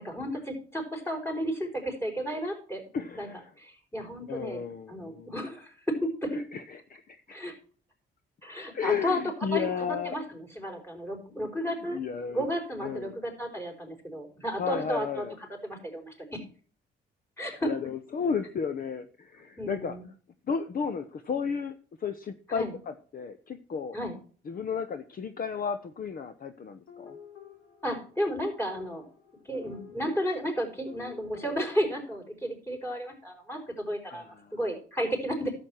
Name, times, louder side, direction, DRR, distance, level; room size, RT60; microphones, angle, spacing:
voice 1, 0.0-2.8 3.1-3.3 3.6-4.6 4.9-6.4 7.3-7.5 8.4-9.2 9.5-9.7 10.0-12.0 12.3-16.4 17.4-17.7 19.6-20.1 22.5-22.7 23.9-24.1 27.8-29.1 29.5-34.3 34.5-35.5, equal, 10° left, 3 dB, 4.7 m, -33 dB
voice 2, 2.9-3.5 4.3-5.3 6.3-7.4 8.7-10.2 11.9-12.5 12.8-13.2 14.6-15.3 17.6-20.0 20.5-24.0 24.5-27.2 29.7-29.8 34.1-34.6, left 6 dB, 45° left, 10 dB, 0.9 m, -33 dB
sound 1, 26.9-31.7, left 8 dB, 75° left, 4.7 m, -50 dB
11.5 x 7.9 x 4.4 m, 0.42 s
cardioid pair, 90°, 20 cm